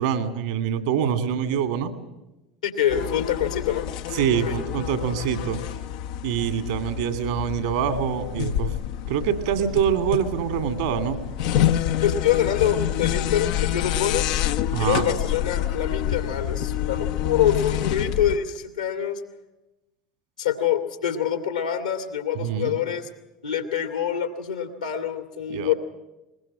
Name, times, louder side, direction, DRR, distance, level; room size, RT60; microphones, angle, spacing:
voice 1, 0.0-1.9 4.1-5.6 6.2-8.8 9.1-11.2 14.7-15.1 22.4-22.8 25.5-25.7, right 8 dB, 70° right, 7 dB, 2.4 m, -25 dB
voice 2, 2.6-3.8 4.4-4.6 12.0-14.3 14.8-19.2 20.4-23.1 23.4-25.7, left 9 dB, 80° left, 6 dB, 2.3 m, -25 dB
sound 1, 2.9-18.4, left 11 dB, 65° left, 0.8 m, -27 dB
21.5 x 21.0 x 7.6 m, 0.99 s
figure-of-eight pair, 70°, 4 cm